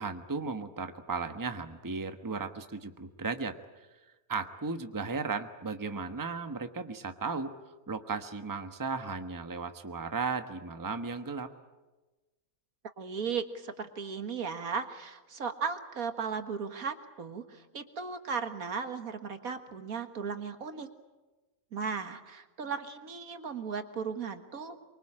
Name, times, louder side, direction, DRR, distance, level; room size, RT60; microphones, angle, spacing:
voice 1, 0.0-3.9 4.3-7.5 7.9-11.5, right 4 dB, 15° right, 7 dB, 1.2 m, -35 dB
voice 2, 13.0-20.9 21.7-24.8, right 6 dB, 75° right, 8 dB, 2.1 m, -36 dB
24.5 x 24.0 x 8.9 m, 1.1 s
omnidirectional pair, 1.5 m